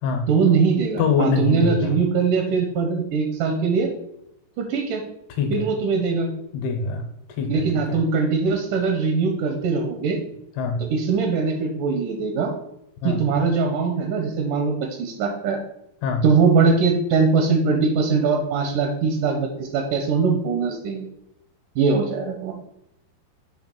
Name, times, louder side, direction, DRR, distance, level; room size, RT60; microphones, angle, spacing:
voice 1, 0.3-3.9 4.6-5.0 5.5-6.3 7.5-10.2 10.9-12.5 13.0-15.6 16.2-21.1 21.8-22.5, right 5 dB, 80° right, 3 dB, 1.9 m, -21 dB
voice 2, 1.0-2.0 5.4-5.7 6.5-8.0 10.6-10.8 13.0-13.2 16.0-16.2, left 4 dB, 80° left, 5 dB, 2.9 m, -24 dB
8.4 x 3.0 x 5.3 m, 0.77 s
omnidirectional pair, 4.7 m